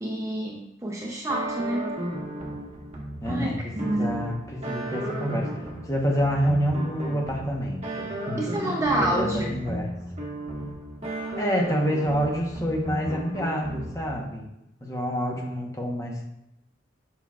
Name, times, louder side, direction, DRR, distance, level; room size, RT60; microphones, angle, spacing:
voice 1, 0.0-2.0 3.3-3.5 3.9-4.2 8.4-9.5, right 1 dB, 15° right, -1 dB, 0.6 m, -28 dB
sound 1, 1.3-14.2, right 1 dB, 35° right, 1.3 m, -35 dB
voice 2, 3.2-9.9 11.4-14.5 14.8-16.2, equal, 15° left, 0 dB, 0.9 m, -28 dB
7.0 x 5.8 x 2.4 m, 0.86 s
head